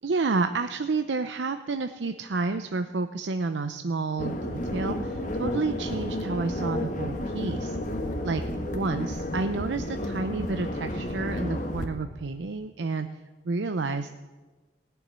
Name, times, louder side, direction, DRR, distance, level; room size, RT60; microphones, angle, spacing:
voice 1, 0.0-7.8 8.2-8.4 8.7-13.1 13.5-14.1, right 3 dB, 90° right, 9 dB, 0.6 m, -30 dB
sound 1, 4.2-11.9, left 1 dB, 45° left, 1.4 m, -31 dB
17.0 x 7.1 x 9.9 m, 1.3 s
head